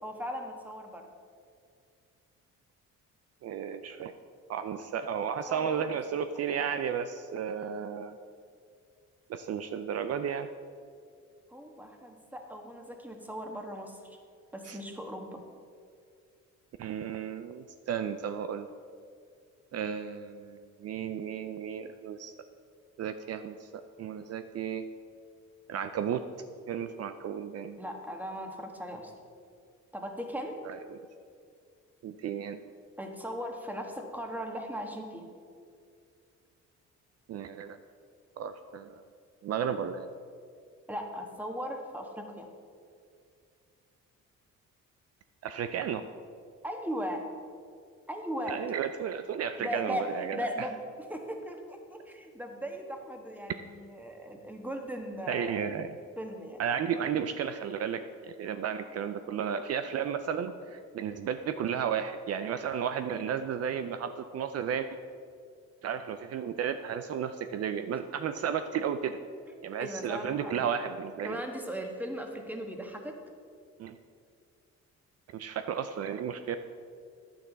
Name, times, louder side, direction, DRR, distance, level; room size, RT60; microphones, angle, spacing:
voice 1, 0.0-1.1 5.5-6.0 6.5-6.6 11.5-14.2 14.5-15.4 27.8-29.1 29.9-30.6 33.0-35.3 40.9-42.5 46.6-47.2 48.1-48.6 49.6-50.8 51.1-55.6 56.2-56.6 69.5-69.6 69.8-70.7 71.2-73.1, equal, 5° right, 3 dB, 1.3 m, -38 dB
voice 2, 3.4-4.1 4.5-8.2 9.3-10.5 14.6-14.8 16.8-18.7 19.7-22.3 23.0-23.7 24.0-24.8 25.7-26.2 26.7-27.8 30.6-31.0 32.0-32.6 37.3-37.8 38.4-39.0 39.4-40.1 45.4-46.1 48.5-50.7 55.3-55.9 56.6-64.9 65.8-69.2 69.6-71.4 73.8-74.0 75.3-76.6, right 8 dB, 55° right, 9 dB, 0.5 m, -33 dB
10.0 x 8.6 x 4.0 m, 2.3 s
cardioid pair, 90°, 30 cm